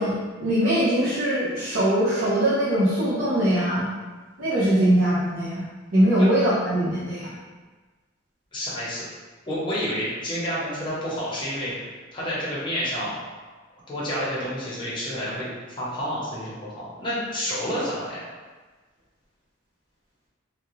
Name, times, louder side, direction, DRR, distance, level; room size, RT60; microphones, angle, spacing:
voice 1, 0.0-3.9 4.4-5.7 5.9-7.3, right 1 dB, 70° right, -11 dB, 0.8 m, -22 dB
voice 2, 8.5-9.0 9.5-13.2 13.9-18.2, equal, 25° left, -8 dB, 0.8 m, -29 dB
2.5 x 2.3 x 3.1 m, 1.3 s
head